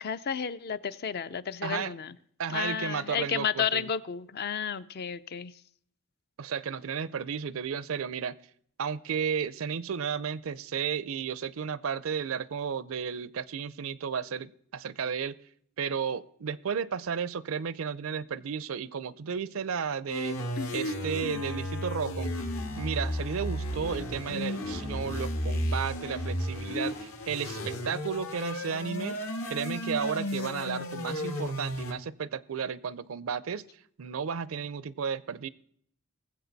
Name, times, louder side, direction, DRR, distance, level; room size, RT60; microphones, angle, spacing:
voice 1, 0.0-2.2 2.5-5.6 20.6-20.7 21.2-21.4, left 7 dB, 45° left, 14 dB, 0.4 m, -32 dB
voice 2, 1.6-1.9 2.4-3.9 6.4-8.4 8.8-15.4 15.8-20.4 20.7-22.3 22.8-29.2 29.5-33.6 34.0-35.5, right 6 dB, 70° right, 18 dB, 0.5 m, -33 dB
sound 1, 20.1-31.9, left 1 dB, 75° left, 1.8 m, -33 dB
20.0 x 7.7 x 4.0 m, 0.65 s
head